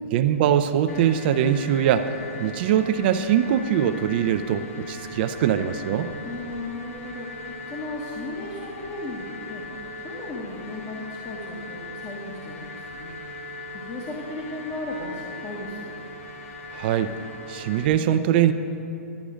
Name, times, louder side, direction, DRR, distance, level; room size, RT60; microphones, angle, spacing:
voice 1, 0.1-2.1 2.4-6.1 16.7-17.1 17.5-18.5, right 10 dB, 45° right, 9 dB, 0.5 m, -22 dB
sound 1, 0.9-17.9, left 1 dB, 65° left, 1.5 m, -39 dB
voice 2, 6.2-7.3 7.7-9.6 10.0-13.2 13.7-15.9, left 2 dB, 30° left, -3 dB, 1.3 m, -35 dB
12.0 x 9.0 x 5.0 m, 2.8 s
hypercardioid pair, 145°, 8 cm